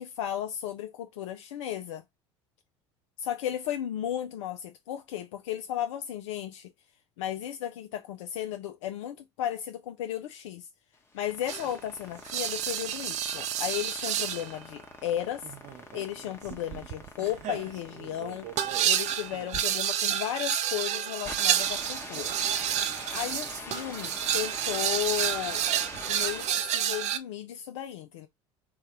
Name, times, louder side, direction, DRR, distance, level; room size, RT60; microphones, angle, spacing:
voice 1, 0.0-2.0 3.2-6.7 7.2-10.7 11.1-15.5 15.9-18.5 18.8-22.3 23.1-25.6 26.1-28.3, left 11 dB, 75° left, 0.4 m, -34 dB
sound 1, 10.9-26.8, left 3 dB, 15° left, 0.9 m, -45 dB
sound 2, 11.5-11.8 12.2-14.5 15.4-27.2, right 10 dB, 45° right, 0.5 m, -30 dB
3.3 x 2.2 x 2.9 m
hypercardioid pair, 75°, 16 cm